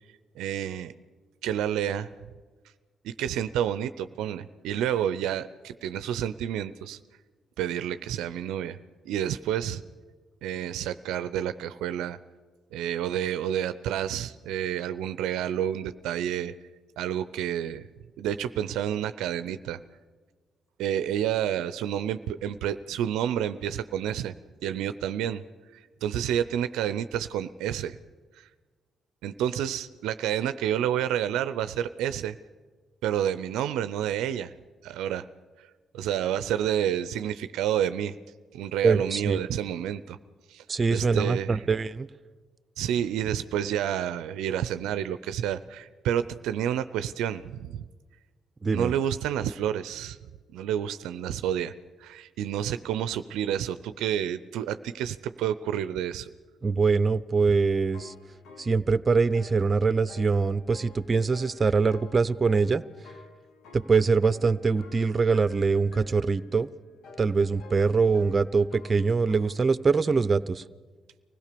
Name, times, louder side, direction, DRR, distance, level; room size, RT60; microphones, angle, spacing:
voice 1, 0.4-0.9 1.4-2.1 3.0-7.0 7.6-8.8 9.1-9.8 10.4-12.2 12.7-16.5 17.0-17.8 18.2-19.8 20.8-24.3 24.6-25.4 25.7-28.0 28.4-28.5 29.2-32.4 33.0-34.5 34.8-35.3 35.6-35.7 35.9-38.1 38.5-40.2 40.5-40.6 40.9-41.7 42.8-47.8 48.7-50.2 50.5-51.7 52.0-56.3, right 10 dB, 80° right, 13 dB, 0.6 m, -29 dB
voice 2, 38.8-39.4 40.7-42.1 48.6-48.9 56.6-58.1 58.6-62.8 63.9-66.7 67.2-70.6, right 4 dB, 40° right, 16 dB, 0.7 m, -23 dB
sound 1, 57.6-58.8 59.3-69.5, left 4 dB, 70° left, 1.5 m, -51 dB
24.0 x 17.0 x 6.8 m, 1.4 s
hypercardioid pair, 50°, 0 cm